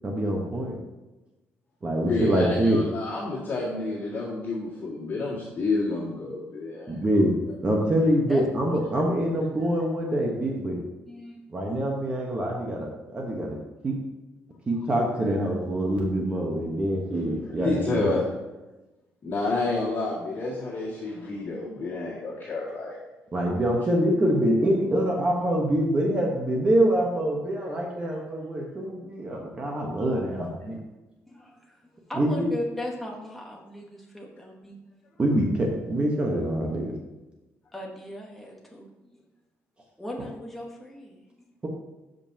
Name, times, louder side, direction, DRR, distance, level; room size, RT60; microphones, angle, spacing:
voice 1, 0.0-0.8 1.8-2.8 6.9-7.3 7.6-10.8 11.5-13.6 13.8-14.0 14.7-18.2 23.3-30.8 32.2-32.5 35.2-36.9, right 1 dB, 25° right, -1 dB, 1.0 m, -25 dB
voice 2, 2.0-7.0 7.5-7.6 17.1-18.2 19.2-23.0, left 3 dB, 40° left, -8 dB, 2.0 m, -30 dB
voice 3, 11.1-11.4 31.3-31.8 32.1-34.8 37.7-38.9 40.0-41.2, left 1 dB, 5° left, -2 dB, 1.1 m, -37 dB
12.5 x 5.3 x 2.8 m, 1.1 s
cardioid pair, 150°, 5 cm